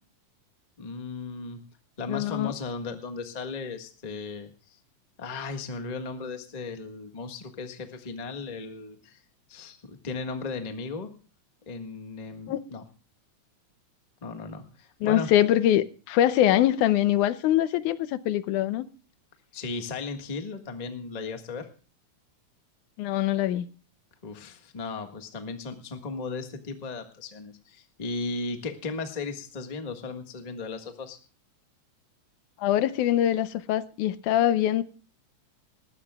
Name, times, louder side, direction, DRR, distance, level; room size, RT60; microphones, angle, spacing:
voice 1, 0.8-1.6 2.0-4.8 5.2-9.2 9.5-11.1 11.7-12.8 14.2-15.3 19.5-21.7 24.2-31.2, left 4 dB, 30° left, 0.8 m, -36 dB
voice 2, 2.1-2.5 12.5-12.6 15.0-18.9 23.0-23.7 32.6-34.8, left 12 dB, 80° left, 2.2 m, -23 dB
19.5 x 15.0 x 2.3 m
omnidirectional pair, 3.5 m